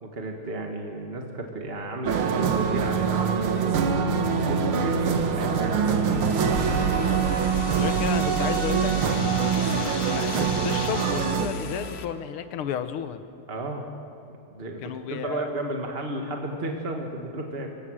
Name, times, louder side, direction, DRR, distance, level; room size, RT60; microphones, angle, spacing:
voice 1, 0.0-6.0 6.5-6.9 13.5-13.9 14.5-17.7, right 2 dB, 30° right, 2 dB, 1.6 m, -33 dB
sound 1, 2.0-11.5, right 6 dB, 80° right, 2.1 m, -24 dB
sound 2, 5.9-12.1, left 7 dB, 65° left, 1.8 m, -39 dB
voice 2, 7.7-9.0 9.4-13.2 14.8-15.5, left 8 dB, 85° left, 10 dB, 1.9 m, -32 dB
25.5 x 16.0 x 6.3 m, 2.7 s
omnidirectional pair, 2.4 m